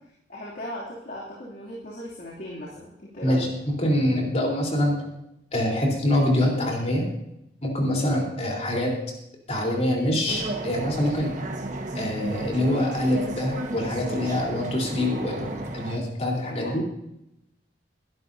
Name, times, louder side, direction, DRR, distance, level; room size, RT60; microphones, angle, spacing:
voice 1, 0.3-3.5 16.4-16.8, left 1 dB, 55° left, -5 dB, 2.8 m, -38 dB
voice 2, 3.2-5.0 5.5-7.1 7.6-9.0 9.5-11.3 11.9-16.8, left 1 dB, 40° left, -1 dB, 3.9 m, -25 dB
sound 1, 10.3-16.0, right 1 dB, 45° right, 1.5 m, -33 dB
21.0 x 12.0 x 2.8 m, 0.83 s
head